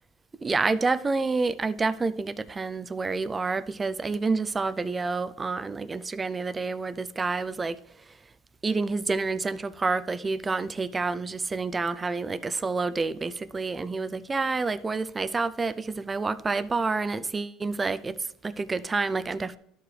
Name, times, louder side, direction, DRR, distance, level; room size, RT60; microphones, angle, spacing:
voice 1, 0.4-7.8 8.6-19.6, right 4 dB, 20° right, 0.4 m, -28 dB
12.5 x 4.7 x 3.3 m
cardioid pair, 125°, 0 cm